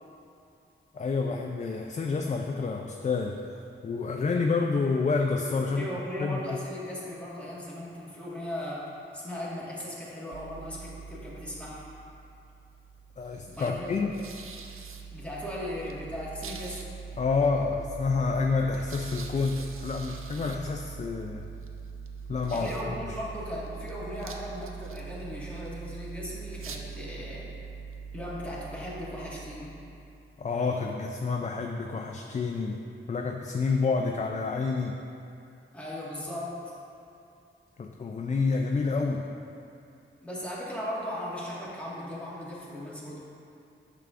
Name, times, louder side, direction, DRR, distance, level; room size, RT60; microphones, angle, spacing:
voice 1, 0.9-5.9 6.2-6.6 13.2-14.2 17.2-21.5 22.3-22.7 30.4-32.8 33.1-35.0 37.8-39.3, left 4 dB, 35° left, 2 dB, 0.4 m, -28 dB
voice 2, 5.7-8.9 9.1-11.9 13.6-13.9 15.1-16.8 22.5-27.5 28.1-29.8 35.7-36.7 40.2-43.2, left 1 dB, 5° left, -8 dB, 1.6 m, -37 dB
sound 1, 10.3-30.2, right 5 dB, 80° right, 0.5 m, -42 dB
9.1 x 6.8 x 2.5 m, 2.6 s
wide cardioid pair, 110°, 21 cm